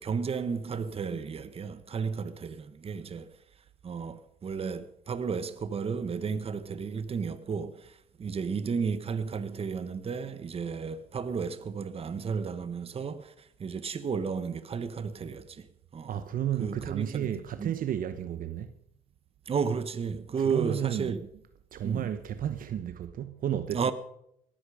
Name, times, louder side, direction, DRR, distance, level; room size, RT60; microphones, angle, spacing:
voice 1, 0.0-3.4 3.8-15.7 15.9-16.2 16.6-17.3 17.6-17.7 19.5-21.3 21.8-22.1 23.7-23.9, right 6 dB, 35° right, 1.4 m, -33 dB
voice 2, 16.1-18.7 20.3-21.2 21.7-23.9, right 10 dB, 55° right, 1.0 m, -32 dB
18.5 x 14.0 x 5.0 m
cardioid pair, 110°, 17 cm